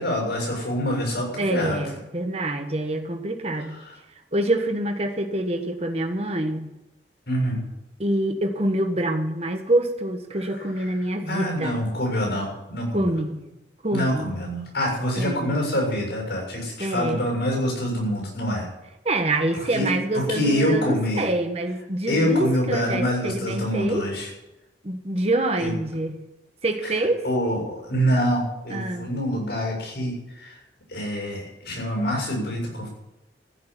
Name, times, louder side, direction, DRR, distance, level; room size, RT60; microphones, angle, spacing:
voice 1, 0.0-1.8 7.3-7.6 11.3-13.1 13.9-18.7 19.7-19.9 20.1-21.2 22.1-24.3 25.6-25.7 26.8-26.9 27.2-30.6 30.9-32.9, equal, 70° left, 0 dB, 7.0 m, -25 dB
voice 2, 1.4-3.8 4.3-6.7 8.0-11.8 12.9-13.4 13.8-14.3 15.2-15.7 16.8-17.2 19.0-24.1 24.8-26.2 26.6-27.2 28.7-29.1, right 1 dB, 35° right, 5 dB, 1.4 m, -26 dB
15.0 x 6.8 x 9.3 m, 0.96 s
head